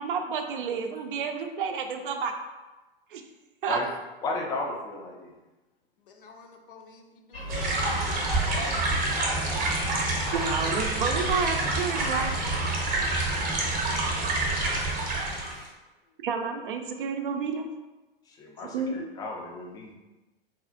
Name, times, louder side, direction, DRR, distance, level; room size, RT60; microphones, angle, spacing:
voice 1, 0.0-2.4 3.1-3.2 3.6-3.8 10.3-12.4 16.2-17.7 18.7-19.1, right 5 dB, 60° right, 6 dB, 0.5 m, -30 dB
voice 2, 4.2-5.3 18.3-19.9, left 2 dB, 15° left, 0 dB, 0.4 m, -34 dB
voice 3, 6.0-8.3, left 4 dB, 60° left, 3 dB, 0.6 m, -50 dB
sound 1, 7.3-12.6, equal, 85° left, 1.3 m, -37 dB
sound 2, 7.5-15.7, right 2 dB, 25° right, 0.7 m, -27 dB
4.1 x 2.3 x 2.5 m, 1.1 s
figure-of-eight pair, 100°, 30 cm